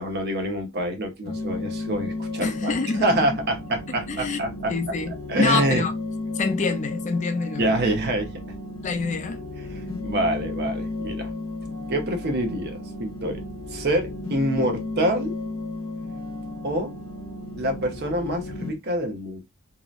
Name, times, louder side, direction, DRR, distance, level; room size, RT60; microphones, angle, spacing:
voice 1, 0.0-4.7 5.3-5.9 7.6-8.3 9.7-11.3 11.9-13.4 13.7-15.3 16.6-17.0 17.6-19.4, right 1 dB, 55° right, 0.7 m, -26 dB
sound 1, 1.3-18.7, left 2 dB, 85° left, 0.6 m, -33 dB
voice 2, 2.4-3.3 4.1-4.4 4.7-5.9 6.3-7.9 8.8-9.4, left 4 dB, 35° left, 0.4 m, -26 dB
2.8 x 2.1 x 2.4 m
head